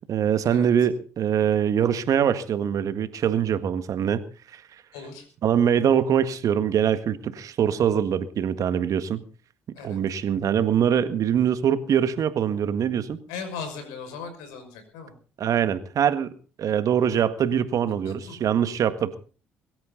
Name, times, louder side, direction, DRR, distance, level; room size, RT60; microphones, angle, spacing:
voice 1, 0.1-4.2 4.5-4.6 5.4-9.2 9.8-13.2 15.4-16.3 16.6-19.2, right 8 dB, 60° right, 1.8 m, -23 dB
voice 2, 4.9-5.3 9.8-10.0 13.3-15.1 18.1-18.3, left 5 dB, 80° left, 5.8 m, -38 dB
23.0 x 13.0 x 4.0 m
hypercardioid pair, 50°, 7 cm